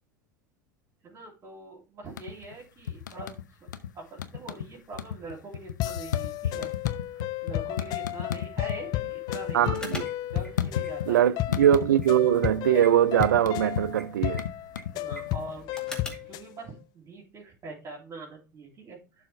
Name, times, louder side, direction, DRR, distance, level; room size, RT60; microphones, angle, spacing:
voice 1, 1.0-3.4 3.9-6.7 7.1-9.7 10.3-11.3 14.9-15.7 16.2-19.3, right 2 dB, 30° right, 3.0 m, -43 dB
sound 1, 2.0-2.5 2.9-3.9 4.2-4.7 4.9-8.8 9.1-11.2 11.5-12.4 12.6-15.5, left 10 dB, 70° left, 0.8 m, -33 dB
sound 2, 5.8-16.5, left 15 dB, 40° left, 0.5 m, -33 dB
voice 2, 9.5-10.0 11.1-14.4, right 11 dB, 65° right, 0.5 m, -22 dB
sound 3, 9.7-16.4, equal, 5° left, 2.2 m, -45 dB
11.5 x 4.3 x 3.4 m
figure-of-eight pair, 80°, 11 cm